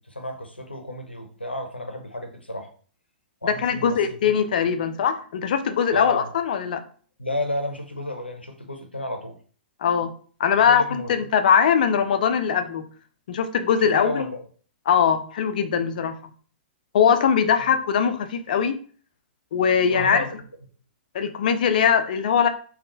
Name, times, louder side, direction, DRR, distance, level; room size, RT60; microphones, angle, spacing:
voice 1, 0.1-2.7 3.4-4.3 5.9-6.3 7.2-9.4 10.6-11.3 13.8-14.4 17.6-17.7 19.9-20.3, left 1 dB, 90° left, 4 dB, 0.7 m, -32 dB
voice 2, 3.4-6.8 9.8-10.1 10.4-12.8 13.3-14.3 14.9-16.1 16.9-18.7 19.5-20.2 21.1-22.5, left 7 dB, 55° left, 8 dB, 0.5 m, -21 dB
3.7 x 2.4 x 3.8 m, 0.43 s
figure-of-eight pair, 110°, 6 cm